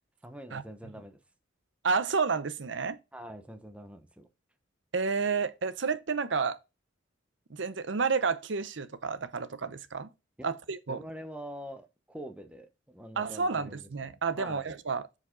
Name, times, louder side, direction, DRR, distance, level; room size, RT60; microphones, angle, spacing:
voice 1, 0.2-1.2 3.1-4.3 10.4-10.5 10.9-13.9 14.3-14.7, equal, 5° right, 0.9 m, -44 dB
voice 2, 1.8-3.0 4.9-6.6 7.5-10.1 10.4-11.0 13.2-15.2, right 5 dB, 70° right, 0.7 m, -30 dB
8.1 x 5.0 x 3.8 m
head